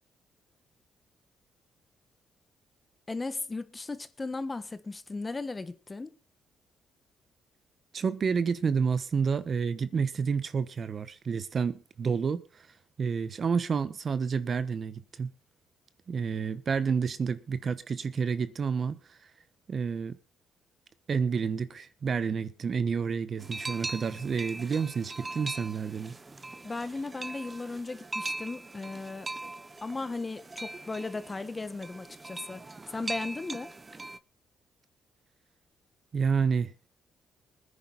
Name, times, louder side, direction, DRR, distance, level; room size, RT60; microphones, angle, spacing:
voice 1, 3.1-6.1 26.6-29.3 29.8-33.7, left 3 dB, 25° left, 1.4 m, -36 dB
voice 2, 7.9-12.7 13.0-15.3 16.1-19.2 19.7-20.2 21.1-26.1 36.1-36.7, right 6 dB, 45° right, 1.2 m, -29 dB
sound 1, 23.4-34.2, right 2 dB, 25° right, 1.0 m, -41 dB
20.5 x 10.0 x 4.2 m
cardioid pair, 90°, 0 cm